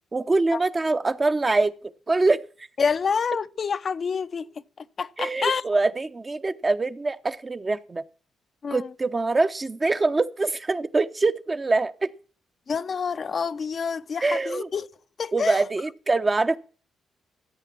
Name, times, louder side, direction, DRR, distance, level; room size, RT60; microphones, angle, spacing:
voice 1, 0.1-2.4 5.2-8.0 8.7-12.1 14.2-14.7 15.3-16.6, right 3 dB, 30° right, 0.8 m, -24 dB
voice 2, 2.8-4.5 5.0-5.6 8.6-8.9 12.7-14.9 15.2-15.6, left 6 dB, 50° left, 0.6 m, -27 dB
14.0 x 8.1 x 6.0 m
cardioid pair, 70°, 0 cm